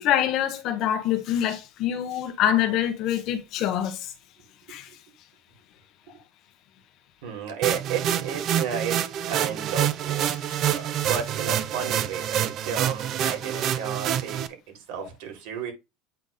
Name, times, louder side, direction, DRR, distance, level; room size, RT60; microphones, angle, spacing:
voice 1, 0.0-4.1 4.7-4.9, left 11 dB, 40° left, 1.1 m, -25 dB
voice 2, 7.2-9.0 9.3-15.7, right 8 dB, 65° right, 3.7 m, -33 dB
sound 1, 7.6-14.5, right 10 dB, 35° right, 0.6 m, -27 dB
9.0 x 4.0 x 3.6 m
cardioid pair, 175°, 0 cm